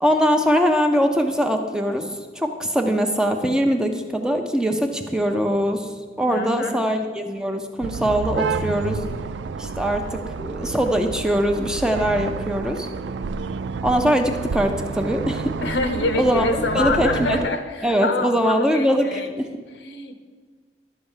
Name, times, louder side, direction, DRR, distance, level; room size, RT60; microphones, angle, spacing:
voice 1, 0.0-2.1 2.4-5.9 6.2-9.0 9.6-10.0 10.4-12.9 13.8-15.5 16.1-17.4 17.8-19.5, equal, 5° right, 4 dB, 0.6 m, -22 dB
voice 2, 6.1-6.8 15.6-19.3 19.8-20.1, left 2 dB, 80° left, 7 dB, 1.0 m, -26 dB
sound 1, 7.8-17.5, right 5 dB, 85° right, 0.4 m, -30 dB
12.0 x 4.3 x 7.3 m, 1.5 s
head